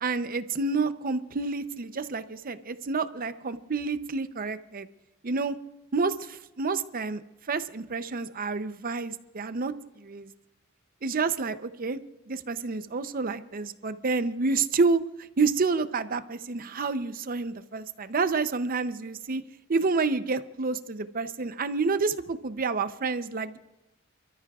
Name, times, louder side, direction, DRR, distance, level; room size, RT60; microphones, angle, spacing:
voice 1, 0.0-4.9 5.2-5.6 5.9-7.2 7.5-10.3 11.0-12.0 12.3-15.0 15.4-19.4 19.7-23.6, right 4 dB, 45° right, 11 dB, 0.6 m, -29 dB
30.0 x 13.5 x 2.4 m, 0.93 s
head